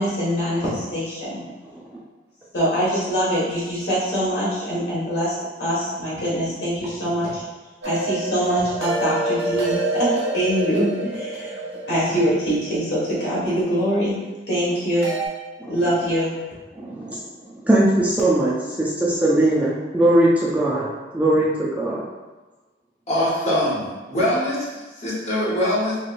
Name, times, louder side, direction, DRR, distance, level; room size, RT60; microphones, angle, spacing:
voice 1, 0.0-1.4 2.5-7.4 7.8-10.1 10.3-14.1 14.5-15.1 15.7-16.3, equal, 65° left, -8 dB, 1.4 m, -23 dB
sound 1, 7.8-13.9 15.0-15.3, right 2 dB, 85° right, 0.8 m, -28 dB
voice 2, 16.7-20.9 21.1-22.0, right 1 dB, 10° right, -6 dB, 0.4 m, -20 dB
voice 3, 23.1-26.0, left 1 dB, 35° left, -7 dB, 0.9 m, -23 dB
3.0 x 3.0 x 2.4 m, 1.2 s
head